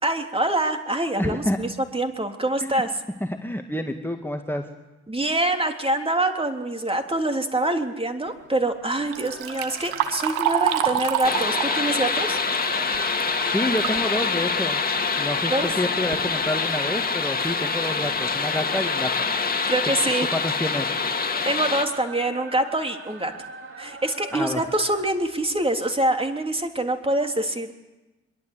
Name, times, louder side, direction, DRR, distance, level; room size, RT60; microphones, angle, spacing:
voice 1, 0.0-3.0 5.1-12.4 15.5-15.7 19.7-20.3 21.4-23.3 23.8-27.7, right 1 dB, 15° right, 5 dB, 3.5 m, -25 dB
voice 2, 1.2-1.6 2.6-2.8 3.2-4.7 13.4-14.8 15.2-19.3 20.3-20.9 24.3-24.6, left 1 dB, 5° left, 4 dB, 2.2 m, -28 dB
sound 1, 8.8-25.0, right 3 dB, 40° right, 4.5 m, -41 dB
Liquid, 8.9-14.0 14.4-14.5 15.4-15.5 15.9-16.3 16.9-17.0 17.5-17.6 18.0-18.3, right 10 dB, 70° right, 2.1 m, -28 dB
sound 2, 11.2-21.8, left 5 dB, 30° left, 2.4 m, -25 dB
24.0 x 22.5 x 8.1 m, 1.1 s
hypercardioid pair, 45°, 32 cm